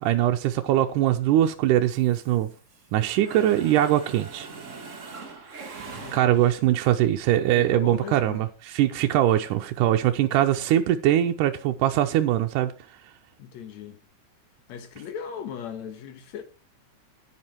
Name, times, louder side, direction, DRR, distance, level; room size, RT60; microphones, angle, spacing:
voice 1, 0.0-2.5 2.9-4.5 6.1-12.7, right 12 dB, 85° right, 2.2 m, -22 dB
Mechanisms, 1.9-2.9 3.2-6.7, right 4 dB, 45° right, 1.0 m, -42 dB
voice 2, 5.9-6.3 7.0-7.1 7.5-8.5 13.4-14.0 14.7-16.4, left 8 dB, 65° left, 2.5 m, -38 dB
9.8 x 9.7 x 4.5 m
omnidirectional pair, 3.6 m